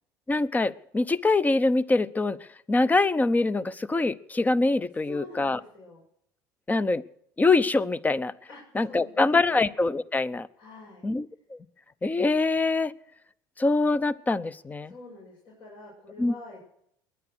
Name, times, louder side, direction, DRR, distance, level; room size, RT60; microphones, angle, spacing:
voice 1, 0.3-2.4 2.7-5.6 6.7-7.0 7.4-8.3 8.7-10.5 11.0-11.6 12.0-12.9 13.6-14.9 16.2-16.3, left 3 dB, 15° left, 18 dB, 0.8 m, -24 dB
voice 2, 5.0-6.0 8.5-9.6 10.6-11.0 14.9-16.6, left 3 dB, 55° left, -3 dB, 7.1 m, -46 dB
21.5 x 9.9 x 6.3 m, 0.70 s
hypercardioid pair, 80°, 10 cm